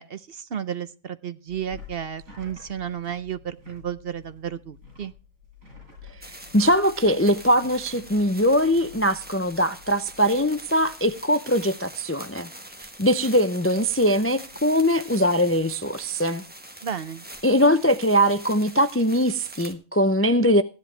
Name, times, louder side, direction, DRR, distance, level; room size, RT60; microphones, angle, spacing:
voice 1, 0.0-5.1 16.8-17.3, right 9 dB, 55° right, 0.9 m, -33 dB
sound 1, 1.5-11.6 11.9-12.3 12.6-16.2, left 6 dB, 85° right, 8.5 m, -50 dB
sound 2, 6.2-19.7, right 1 dB, 5° right, 1.3 m, -44 dB
voice 2, 6.5-12.5 13.0-16.4 17.4-20.6, equal, 20° left, 0.4 m, -21 dB
15.5 x 10.5 x 3.3 m
omnidirectional pair, 1.4 m